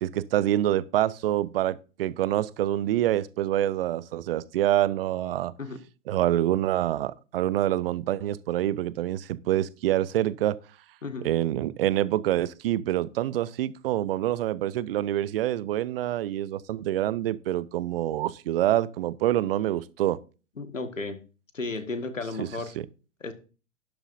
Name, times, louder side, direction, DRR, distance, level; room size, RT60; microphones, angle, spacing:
voice 1, 0.0-5.5 6.1-10.6 11.2-20.2 22.4-22.5 22.8-22.9, right 13 dB, 50° right, 0.7 m, -26 dB
voice 2, 20.6-21.2 21.5-22.8 23.2-23.3, left 3 dB, 85° left, 1.7 m, -33 dB
12.0 x 11.0 x 2.6 m
figure-of-eight pair, 105°, 38 cm